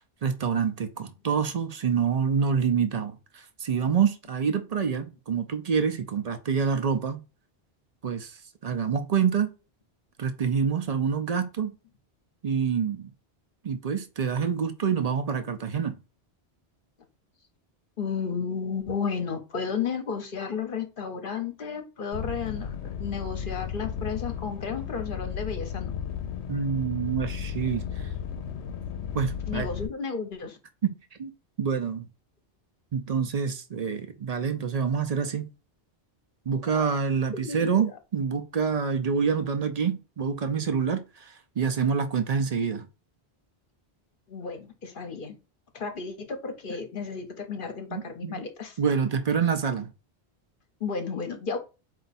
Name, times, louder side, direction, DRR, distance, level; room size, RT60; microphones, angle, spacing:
voice 1, 0.2-3.1 3.6-7.2 8.0-8.4 8.6-9.5 10.2-11.7 12.4-13.1 13.6-16.0 26.5-28.0 29.1-29.7 30.8-30.9 31.2-31.3 31.6-32.1 32.9-35.5 36.5-42.9 47.9-48.4 48.8-49.9, right 6 dB, 50° right, 0.5 m, -27 dB
voice 2, 18.0-25.9 29.5-30.6 36.7-36.9 37.3-37.9 44.3-45.4 45.7-48.8 50.8-51.6, left 5 dB, 55° left, 0.9 m, -33 dB
sound 1, 22.1-29.9, left 8 dB, 90° left, 0.9 m, -34 dB
4.5 x 2.5 x 4.0 m
omnidirectional pair, 1.1 m